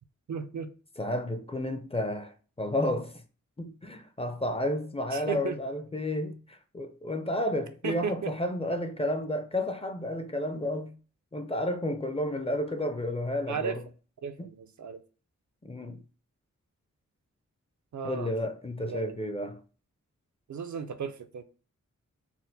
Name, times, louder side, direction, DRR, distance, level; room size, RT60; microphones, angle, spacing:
voice 1, 0.3-0.7 5.1-5.6 7.8-8.3 13.5-13.8 14.2-15.0 17.9-18.3 18.8-19.1 20.5-21.4, right 6 dB, 70° right, 0.5 m, -35 dB
voice 2, 1.0-3.1 3.6-11.0 11.3-13.8 14.4-14.5 15.6-16.0 18.0-19.6, left 1 dB, 20° left, 0.4 m, -31 dB
4.3 x 2.1 x 3.9 m
wide cardioid pair, 110°, 30 cm